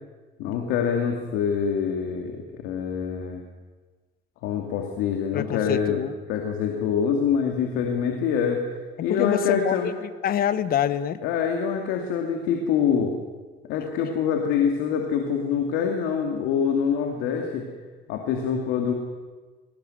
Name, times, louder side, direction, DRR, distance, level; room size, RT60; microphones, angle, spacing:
voice 1, 0.4-3.4 4.4-6.0 6.3-8.6 9.0-9.9 11.2-13.1 13.7-17.6 18.1-18.9, left 7 dB, 80° left, 2 dB, 2.5 m, -25 dB
voice 2, 5.3-6.1 9.1-11.2, left 10 dB, 50° left, 14 dB, 1.2 m, -26 dB
20.5 x 18.5 x 7.8 m, 1.4 s
cardioid pair, 130°, 20 cm